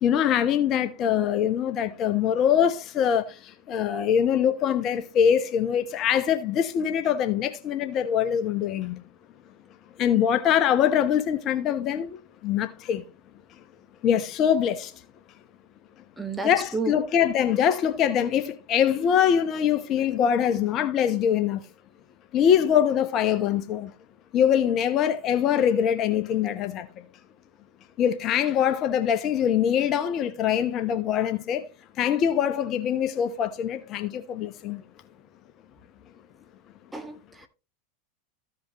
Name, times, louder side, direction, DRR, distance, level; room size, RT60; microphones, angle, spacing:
voice 1, 0.0-3.3 3.7-9.0 10.0-12.2 12.4-13.0 14.0-14.9 16.4-21.6 22.3-23.9 24.3-26.9 28.0-31.6 32.0-34.8, left 9 dB, 40° left, 0.9 m, -23 dB
voice 2, 16.2-17.0 36.9-37.5, right 3 dB, 10° right, 1.4 m, -32 dB
14.5 x 5.1 x 3.0 m
hypercardioid pair, 90°, 0 cm